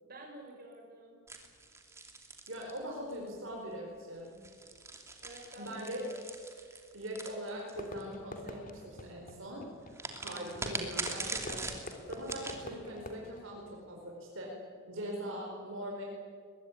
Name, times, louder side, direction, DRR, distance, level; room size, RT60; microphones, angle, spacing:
voice 1, 0.0-1.2 5.2-6.1, right 1 dB, 45° right, 1 dB, 6.6 m, -50 dB
sound 1, 1.3-3.3 4.2-8.0 9.9-12.6, right 3 dB, 15° right, 2.6 m, -41 dB
voice 2, 2.5-4.3 5.6-6.0 6.6-11.7 12.1-14.5 14.9-16.0, equal, 70° right, -1 dB, 4.6 m, -42 dB
Fireworks, 7.7-14.3, left 1 dB, 40° left, 2.9 m, -47 dB
22.5 x 21.5 x 9.8 m, 2.1 s
head